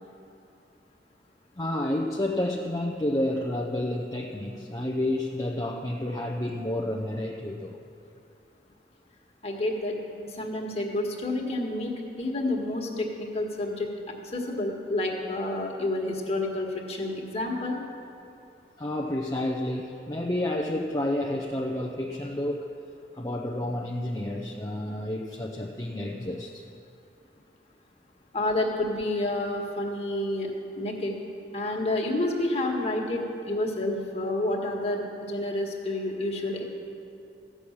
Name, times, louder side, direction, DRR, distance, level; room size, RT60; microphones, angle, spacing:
voice 1, 1.6-7.8 18.8-22.7 23.2-26.6, left 1 dB, 20° left, 0 dB, 0.6 m, -30 dB
voice 2, 9.4-10.0 10.2-17.8 28.3-31.1 31.5-36.6, left 1 dB, 35° left, -1 dB, 1.7 m, -29 dB
14.5 x 6.3 x 8.6 m, 2.6 s
head